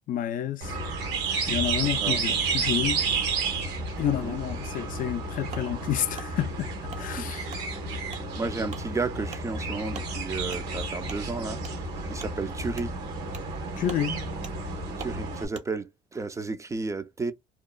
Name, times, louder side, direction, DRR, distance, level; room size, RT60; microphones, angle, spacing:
voice 1, 0.1-0.8 1.5-3.0 4.0-6.7 7.0-7.5 13.8-14.2, left 10 dB, 55° left, 0.4 m, -29 dB
sound 1, 0.6-15.5, right 4 dB, 85° right, 1.1 m, -31 dB
voice 2, 1.8-2.2 4.1-4.4 7.2-7.5 8.4-11.6 12.1-12.9 15.0-17.3, right 3 dB, 20° right, 0.4 m, -33 dB
Wood, 5.5-5.7 6.1-6.3 6.9-7.0 7.5-7.6 8.1-8.2 8.7-8.8 9.3-9.4 9.9-10.1 10.5-10.6 11.1-11.2 11.6-11.7 12.2-12.3 12.7-12.9 13.3-13.5 13.8-14.0 14.4-14.5 15.0-15.1 15.5-15.7, right 5 dB, 45° right, 0.7 m, -42 dB
2.8 x 2.3 x 2.2 m
cardioid pair, 110°, 17 cm